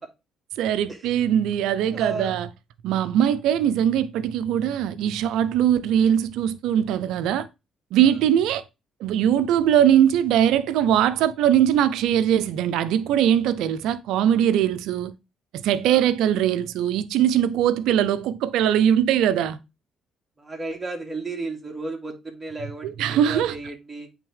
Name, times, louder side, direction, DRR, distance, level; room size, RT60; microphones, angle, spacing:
voice 1, 0.6-2.5 2.8-7.5 7.9-8.6 9.0-15.1 15.5-19.6 22.8-23.6, right 10 dB, 80° right, 0.6 m, -21 dB
voice 2, 1.9-2.4 15.8-16.1 20.4-24.1, right 3 dB, 20° right, 2.6 m, -33 dB
8.3 x 3.6 x 3.3 m
supercardioid pair, 60°, 0 cm